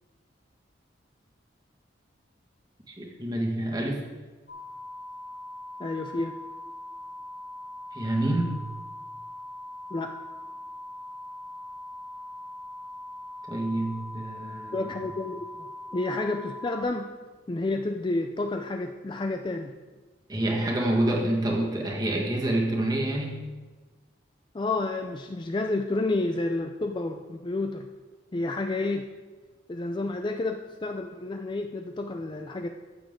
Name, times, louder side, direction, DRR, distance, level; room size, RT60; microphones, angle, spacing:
voice 1, 2.9-4.1 7.9-8.6 13.5-14.9 20.3-23.4, right 1 dB, 20° right, -1 dB, 1.6 m, -27 dB
sound 1, 4.5-16.8, left 1 dB, 65° left, 3.3 m, -41 dB
voice 2, 5.8-6.3 9.9-10.1 14.7-15.7 15.9-17.1 17.5-19.7 24.5-27.9 28.3-29.1 29.7-32.7, left 2 dB, 25° left, 5 dB, 0.4 m, -30 dB
14.0 x 7.2 x 3.7 m, 1.3 s
head